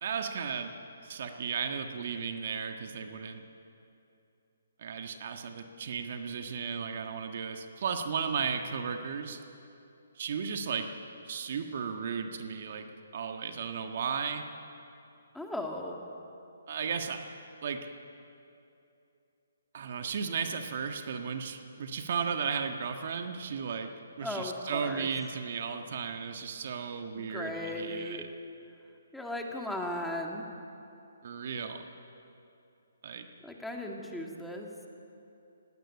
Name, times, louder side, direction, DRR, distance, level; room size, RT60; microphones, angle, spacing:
voice 1, 0.0-0.7 1.0-3.4 4.8-9.4 10.2-10.9 11.2-12.9 13.1-14.4 16.7-17.2 17.6-17.9 19.7-23.9 24.2-28.3 31.2-31.8 33.0-33.3, right 6 dB, 50° right, 6 dB, 1.5 m, -35 dB
voice 2, 15.3-16.1 24.2-25.1 27.1-28.3 29.1-30.5 33.4-34.7, left 1 dB, 5° left, 0 dB, 2.0 m, -37 dB
20.0 x 17.0 x 8.7 m, 2.7 s
hypercardioid pair, 145°, 0 cm